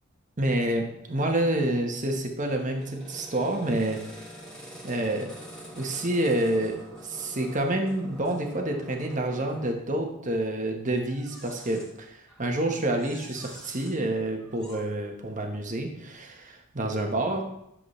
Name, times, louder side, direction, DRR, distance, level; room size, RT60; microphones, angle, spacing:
voice 1, 0.4-4.2 4.8-5.3 5.8-17.4, right 1 dB, 35° right, 3 dB, 1.2 m, -28 dB
sound 1, 2.8-9.8 11.0-11.9 12.3-12.5 12.9-13.9 14.4-14.8, right 1 dB, 5° left, 2.1 m, -46 dB
10.5 x 7.3 x 3.3 m, 0.80 s
head